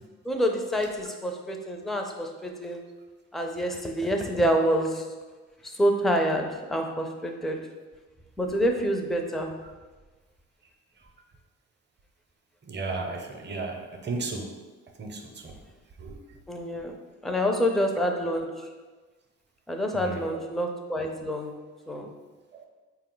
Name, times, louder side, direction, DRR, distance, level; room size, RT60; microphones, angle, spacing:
voice 1, 0.2-2.8 3.3-5.1 5.6-7.7 8.4-9.6 16.5-17.0 17.2-18.6 19.7-21.5 21.9-22.1, equal, ahead, 3 dB, 0.4 m, -27 dB
voice 2, 12.6-14.5 15.0-15.6 16.0-16.4 19.9-20.4 22.5-22.7, right 3 dB, 35° right, 3 dB, 0.6 m, -35 dB
4.2 x 2.3 x 3.8 m, 1.3 s
cardioid pair, 90°, 30 cm